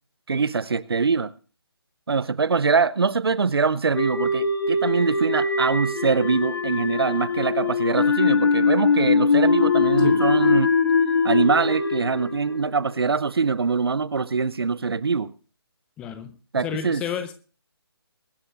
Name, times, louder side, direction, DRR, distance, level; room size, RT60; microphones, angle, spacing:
voice 1, 0.3-1.3 2.1-10.7 11.2-15.3 16.5-17.0, right 5 dB, 65° right, 0.7 m, -23 dB
sound 1, 3.9-13.2, left 4 dB, 55° left, 1.5 m, -22 dB
voice 2, 16.0-16.3 16.6-17.3, left 8 dB, 5° left, 0.5 m, -31 dB
22.5 x 11.0 x 2.6 m
figure-of-eight pair, 150°, 14 cm